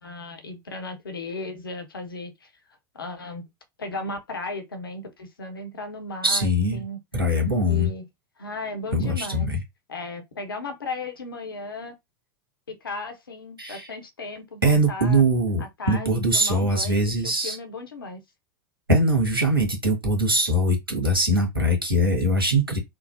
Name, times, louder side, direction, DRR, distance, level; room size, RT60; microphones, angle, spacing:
voice 1, 0.0-2.5 2.9-3.4 3.8-7.0 7.7-8.0 8.4-9.5 9.9-11.9 12.8-15.2 15.6-18.2, left 2 dB, 80° left, 0.8 m, -35 dB
voice 2, 6.2-6.8 7.1-7.9 8.9-9.6 13.6-13.9 14.6-17.6 18.9-22.8, equal, 90° right, 1.3 m, -22 dB
3.8 x 2.0 x 2.5 m
figure-of-eight pair, 90°, 12 cm